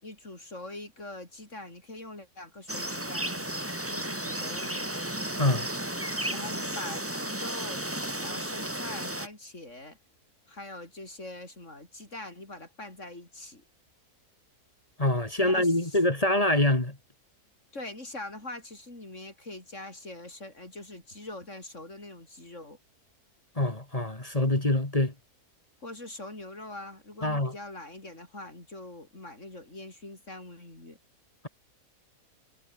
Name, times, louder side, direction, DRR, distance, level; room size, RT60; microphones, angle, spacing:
voice 1, 0.0-5.1 6.3-7.8 8.2-10.0 10.5-13.6 15.4-16.0 17.7-22.8 25.8-31.0, left 2 dB, 50° left, 7.1 m, -43 dB
sound 1, 2.7-9.3, right 1 dB, 10° right, 2.2 m, -33 dB
voice 2, 15.0-17.0 23.6-25.1 27.2-27.5, left 1 dB, 20° left, 2.6 m, -25 dB
omnidirectional pair, 1.6 m